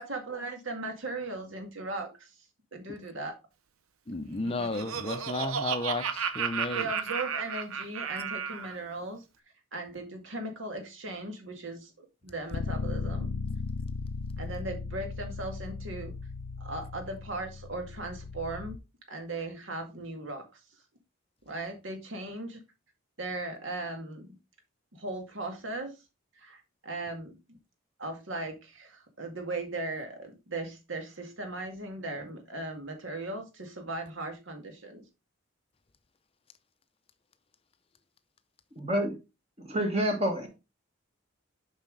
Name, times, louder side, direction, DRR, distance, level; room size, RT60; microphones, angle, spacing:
voice 1, 0.0-2.3 2.7-3.3 6.7-9.2 9.7-13.3 14.4-16.1 16.6-18.8 19.1-20.4 21.5-22.6 23.2-24.4 25.0-25.9 26.4-27.6 28.0-35.0, right 2 dB, 65° right, 1.9 m, -38 dB
voice 2, 4.1-6.9, left 2 dB, 25° left, 0.5 m, -33 dB
Laughter, 4.3-8.8, right 7 dB, 90° right, 0.7 m, -33 dB
Bass guitar, 12.5-18.8, left 4 dB, 90° left, 0.5 m, -36 dB
voice 3, 38.8-39.1 39.6-40.5, equal, 30° right, 1.5 m, -28 dB
7.3 x 5.6 x 3.8 m
head